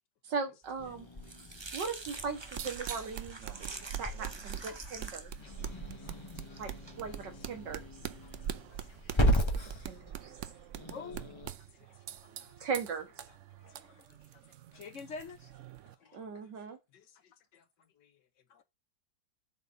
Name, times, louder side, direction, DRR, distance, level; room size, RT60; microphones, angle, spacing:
voice 1, 0.2-1.1 1.7-3.4 4.0-5.3 6.6-6.7 7.0-7.8 9.8-10.3 12.6-13.1 16.1-16.8, right 5 dB, 80° right, 2.2 m, -38 dB
sound 1, 0.7-9.0, right 3 dB, 35° right, 0.4 m, -47 dB
Growling / Hiss, 0.8-11.5, equal, 20° left, 0.9 m, -36 dB
voice 2, 0.9-1.9 2.4-2.5 2.9-3.1 3.5-4.2 4.6-4.7 5.4-6.7 7.0-7.5 8.0-10.6 11.6-12.7 13.3-14.3 14.7-14.8 16.0-16.6 16.9-18.6, left 8 dB, 80° left, 1.7 m, -66 dB
sound 2, 2.2-16.0, right 10 dB, 65° right, 0.8 m, -44 dB
voice 3, 10.9-11.3 13.6-13.9 14.7-15.5 15.8-16.2, left 4 dB, 55° left, 0.9 m, -45 dB
7.9 x 4.0 x 6.8 m
omnidirectional pair, 1.9 m